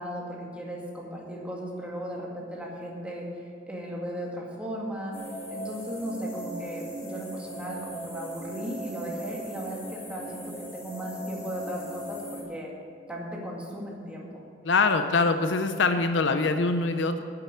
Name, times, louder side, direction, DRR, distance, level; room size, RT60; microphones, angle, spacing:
voice 1, 0.0-3.3 3.7-5.2 5.5-12.7 13.1-14.4, equal, 5° right, -3 dB, 2.1 m, -36 dB
sound 1, 5.1-12.4, right 1 dB, 15° left, 2.3 m, -39 dB
voice 2, 14.6-17.2, left 3 dB, 70° left, 8 dB, 0.7 m, -24 dB
10.0 x 7.9 x 8.3 m, 2.3 s
head